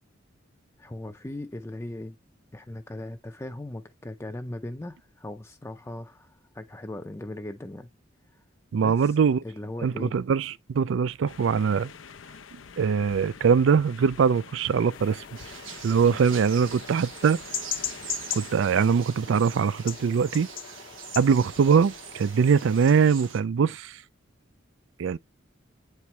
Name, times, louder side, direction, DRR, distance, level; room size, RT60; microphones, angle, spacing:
voice 1, 0.8-2.2 2.5-7.9 8.3-8.4 8.8-9.2 9.4-10.1 16.0-16.2, left 1 dB, 15° left, 0.5 m, -38 dB
voice 2, 8.7-9.4 9.8-11.9 12.8-15.2 15.8-17.4 18.3-20.5 21.2-23.9 25.0-25.2, right 6 dB, 75° right, 0.4 m, -22 dB
sound 1, 11.3-18.6, left 6 dB, 85° left, 0.7 m, -47 dB
sound 2, 14.9-23.1, left 10 dB, 50° left, 0.7 m, -39 dB
sound 3, 15.4-23.4, right 8 dB, 90° right, 1.2 m, -43 dB
8.3 x 4.5 x 3.2 m
head